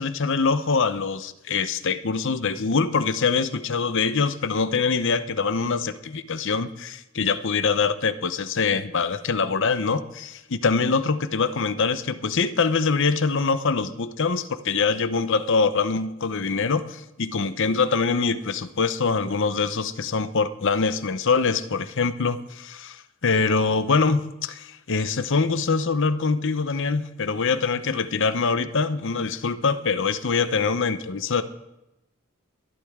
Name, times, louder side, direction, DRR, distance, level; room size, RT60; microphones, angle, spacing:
voice 1, 0.0-31.4, left 4 dB, 55° left, 11 dB, 0.8 m, -24 dB
22.5 x 12.0 x 3.7 m, 0.91 s
head